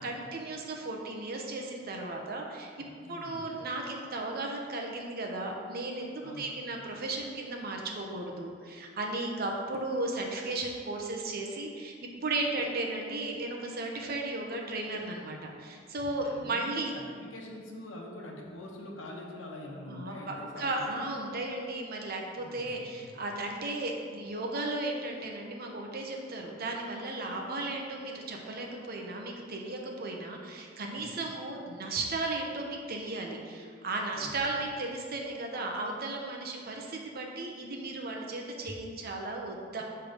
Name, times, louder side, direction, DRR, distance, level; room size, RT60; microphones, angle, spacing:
voice 1, 0.0-2.7 3.1-11.9 12.2-16.9 19.9-39.8, right 2 dB, 55° right, 1 dB, 0.8 m, -35 dB
voice 2, 2.8-3.5 6.2-6.6 16.1-21.0 22.4-23.1 31.0-31.4 34.1-34.3 39.8-39.9, left 1 dB, 80° left, -1 dB, 1.0 m, -45 dB
6.6 x 3.4 x 5.0 m, 2.1 s
head